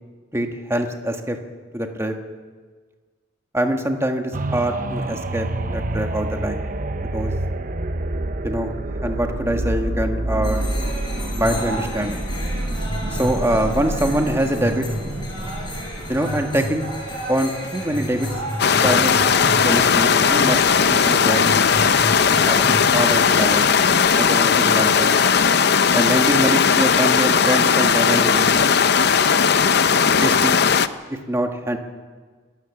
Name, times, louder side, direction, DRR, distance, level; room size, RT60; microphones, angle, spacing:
voice 1, 0.3-1.4 1.7-2.1 3.5-6.6 7.1-7.3 8.4-8.7 9.0-10.7 11.3-12.2 13.1-14.9 16.1-16.9 17.3-18.3 18.8-19.2 19.6-21.5 22.5-23.7 24.2-25.2 25.9-28.8 30.0-30.6 31.1-31.8, right 1 dB, 15° right, 4 dB, 1.6 m, -24 dB
sound 1, 4.3-18.0 18.5-18.6, right 1 dB, 45° right, 0.9 m, -28 dB
sound 2, 10.4-24.0, equal, 25° left, 7.2 m, -31 dB
sound 3, 18.6-30.9, left 6 dB, 55° left, 0.7 m, -17 dB
27.0 x 13.5 x 7.2 m, 1.5 s
head